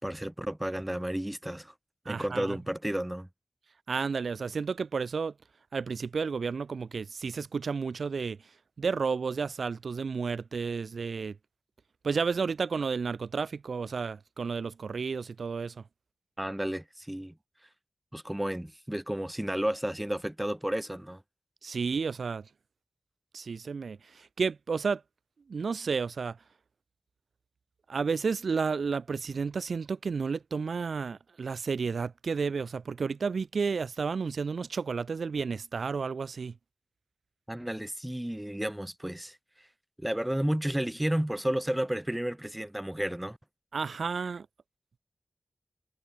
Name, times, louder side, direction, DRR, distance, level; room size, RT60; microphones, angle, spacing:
voice 1, 0.0-1.7 2.0-3.3 16.4-17.3 18.1-21.2 37.5-39.4 40.0-43.4, right 1 dB, 10° right, 1.0 m, -32 dB
voice 2, 2.1-2.6 3.9-5.3 5.7-8.4 8.8-11.4 12.0-15.8 21.6-22.5 23.3-25.0 25.5-26.4 27.9-36.6 43.7-44.5, right 5 dB, 85° right, 0.7 m, -32 dB
wide cardioid pair, 100°, 0 cm